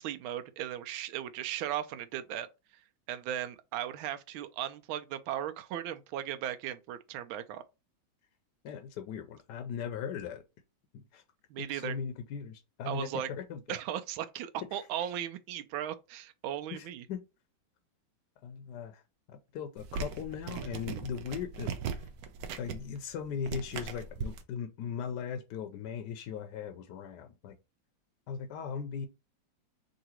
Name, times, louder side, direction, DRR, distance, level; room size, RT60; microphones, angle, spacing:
voice 1, 0.0-2.5 3.1-7.6 11.5-12.0 12.9-13.3 13.7-17.1, right 11 dB, 90° right, 1.4 m, -37 dB
voice 2, 8.6-10.4 10.9-11.2 11.7-13.8 14.7-14.8 16.7-17.2 18.4-19.0 19.3-21.7 22.0-22.1 22.6-27.6 28.3-29.1, left 7 dB, 70° left, 1.1 m, -39 dB
sound 1, 19.8-24.4, right 6 dB, 70° right, 0.9 m, -39 dB
3.9 x 2.7 x 4.3 m
omnidirectional pair, 2.2 m